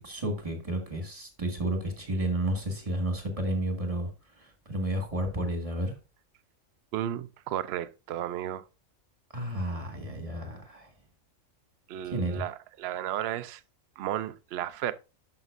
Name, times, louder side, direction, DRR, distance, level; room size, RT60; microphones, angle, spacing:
voice 1, 0.0-6.0 9.3-10.9 12.0-12.5, right 1 dB, 25° right, 1.8 m, -32 dB
voice 2, 6.9-8.6 11.9-13.6 14.0-14.9, right 12 dB, 65° right, 0.7 m, -33 dB
11.0 x 5.9 x 2.5 m
omnidirectional pair, 1.5 m